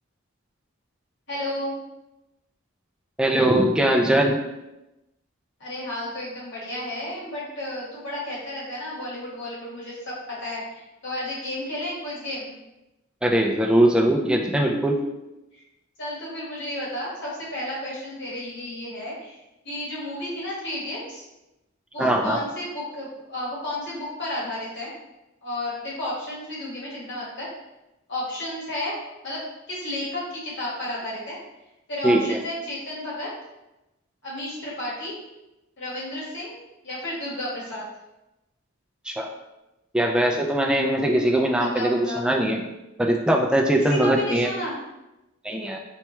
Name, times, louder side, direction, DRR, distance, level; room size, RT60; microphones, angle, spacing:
voice 1, 1.3-1.7 5.6-12.5 15.5-15.6 16.0-21.2 21.9-24.9 25.4-27.5 28.1-29.0 29.2-31.4 31.9-33.3 34.2-35.2 35.8-36.6 36.8-37.9 41.6-42.2 43.8-44.8, left 1 dB, 55° left, -6 dB, 1.3 m, -32 dB
voice 2, 3.2-4.4 13.2-15.0 22.0-22.4 32.0-32.4 39.1-39.3 39.9-42.6 43.0-44.5 45.4-45.8, right 1 dB, 5° right, 0 dB, 0.3 m, -21 dB
4.4 x 2.2 x 3.0 m, 0.97 s
head